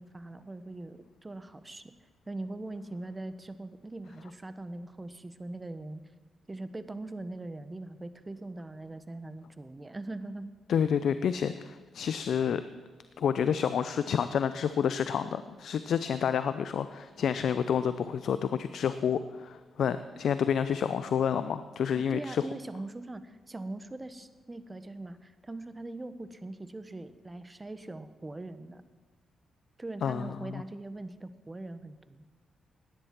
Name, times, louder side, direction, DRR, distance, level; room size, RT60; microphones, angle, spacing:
voice 1, 0.0-1.8 2.3-6.0 6.5-10.5 22.0-28.8 29.8-32.2, right 2 dB, 25° right, 12 dB, 1.2 m, -41 dB
voice 2, 10.7-12.6 13.2-22.4 30.0-30.6, left 8 dB, 70° left, 12 dB, 0.5 m, -29 dB
17.0 x 10.5 x 6.0 m, 1.4 s
hypercardioid pair, 45°, 0 cm